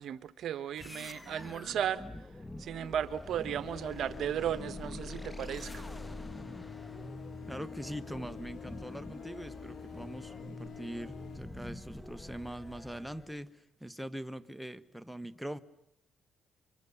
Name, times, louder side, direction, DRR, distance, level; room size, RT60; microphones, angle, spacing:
voice 1, 0.0-2.0 2.6-5.8, right 9 dB, 70° right, 14 dB, 1.1 m, -35 dB
sound 1, 0.8-13.4, left 1 dB, 15° left, 1.4 m, -45 dB
sound 2, 3.6-11.4, left 9 dB, 85° left, 1.2 m, -49 dB
voice 2, 7.5-15.6, equal, ahead, 11 dB, 1.3 m, -42 dB
29.5 x 24.5 x 7.3 m, 0.78 s
cardioid pair, 90°, 0 cm